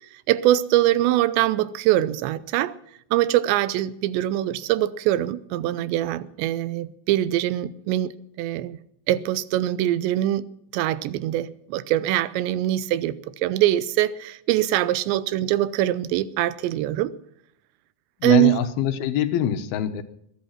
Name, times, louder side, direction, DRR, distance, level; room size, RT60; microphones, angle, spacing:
voice 1, 0.3-2.7 3.1-8.1 8.4-8.8 9.1-10.5 10.7-17.1 18.2-18.6, right 14 dB, 85° right, 3.0 m, -23 dB
voice 2, 18.2-20.0, left 10 dB, 70° left, 2.7 m, -24 dB
21.0 x 11.5 x 5.8 m
omnidirectional pair, 5.0 m